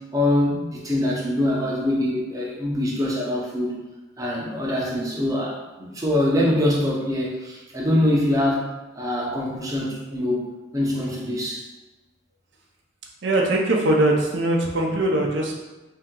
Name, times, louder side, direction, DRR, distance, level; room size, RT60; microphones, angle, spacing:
voice 1, 0.1-3.8 4.2-8.6 9.0-10.5 10.7-11.6, left 1 dB, 15° right, -4 dB, 0.7 m, -24 dB
voice 2, 13.2-15.5, right 1 dB, 65° right, 0 dB, 0.6 m, -21 dB
3.4 x 2.7 x 3.7 m, 1.1 s
head